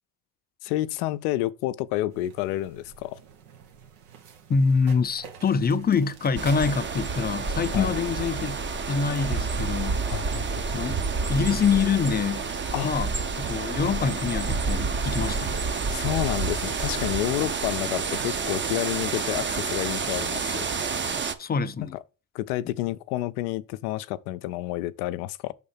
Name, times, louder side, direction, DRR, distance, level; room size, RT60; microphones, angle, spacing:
voice 1, 0.6-3.2 7.7-7.9 10.1-10.4 12.7-12.9 15.9-20.6 22.3-25.5, left 15 dB, 80° left, 0.6 m, -29 dB
sound 1, 2.1-20.2, right 7 dB, 80° right, 1.3 m, -49 dB
voice 2, 4.5-8.6 8.9-10.0 10.7-11.0 11.3-12.5 12.8-13.1 13.4-15.6 21.4-22.0, left 5 dB, 20° left, 0.5 m, -25 dB
sound 2, 6.4-21.3, right 4 dB, 25° right, 0.8 m, -29 dB
5.4 x 3.8 x 5.5 m
hypercardioid pair, 65°, 44 cm